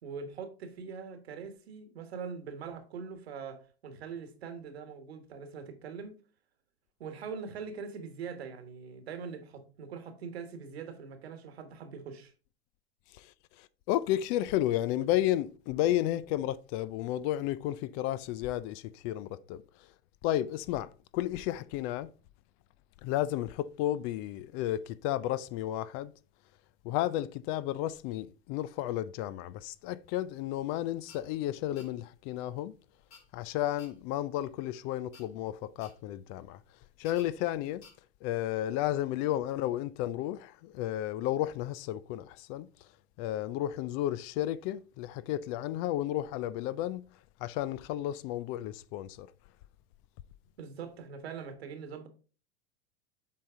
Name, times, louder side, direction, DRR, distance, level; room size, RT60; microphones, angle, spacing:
voice 1, 0.0-6.1 7.0-12.3 50.6-52.1, right 6 dB, 80° right, 1.5 m, -42 dB
voice 2, 13.9-19.6 20.2-22.1 23.0-26.1 26.8-32.7 33.3-36.6 37.0-37.8 38.2-42.7 43.2-47.0 47.4-49.3, left 13 dB, 45° left, 0.4 m, -32 dB
sound 1, 30.2-37.9, left 5 dB, 65° left, 2.8 m, -60 dB
7.5 x 4.0 x 3.6 m
hypercardioid pair, 95°, 31 cm